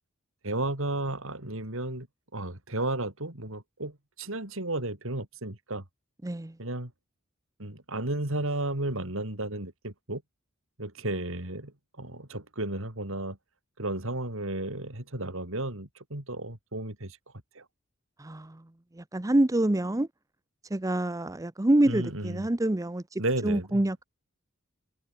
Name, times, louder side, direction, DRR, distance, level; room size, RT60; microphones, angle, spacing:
voice 1, 0.4-2.1 2.3-5.8 6.6-6.9 7.6-10.2 10.8-11.7 12.0-13.4 13.8-17.2 17.5-17.6 21.8-22.5 23.2-23.8, right 2 dB, 70° right, 4.2 m, -33 dB
voice 2, 6.2-6.6 18.2-18.6 18.9-20.1 20.7-24.0, right 1 dB, 15° right, 0.7 m, -26 dB
head